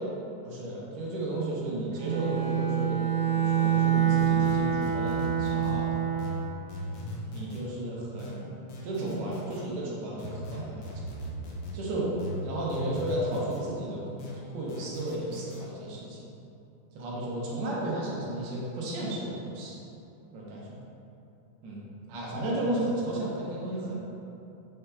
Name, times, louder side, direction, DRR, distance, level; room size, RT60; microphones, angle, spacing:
voice 1, 0.4-3.0 3.3-6.0 7.3-8.6 8.8-10.9 11.7-12.1 12.4-14.0 14.5-16.2 16.9-19.8 20.3-20.8 21.6-21.8 22.1-24.0, right 1 dB, 75° right, -5 dB, 1.7 m, -33 dB
Bowed string instrument, 1.9-6.4, right 9 dB, 90° right, 2.3 m, -26 dB
sound 1, 4.2-5.8 6.2-7.6 8.2-9.6 10.2-11.8 12.2-13.6 14.2-15.6, equal, 85° left, 1.3 m, -38 dB
5.6 x 3.8 x 2.2 m, 2.8 s
omnidirectional pair, 3.5 m